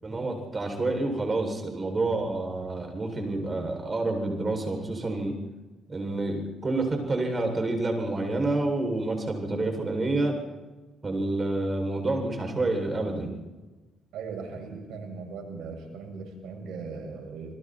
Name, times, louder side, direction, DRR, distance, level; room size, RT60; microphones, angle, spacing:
voice 1, 0.0-5.3 5.9-10.4 11.0-13.3, right 2 dB, 30° right, 4 dB, 8.0 m, -28 dB
voice 2, 14.1-17.5, right 4 dB, 80° right, 3 dB, 7.4 m, -38 dB
30.0 x 21.0 x 4.8 m, 1.2 s
cardioid pair, 90°, 0 cm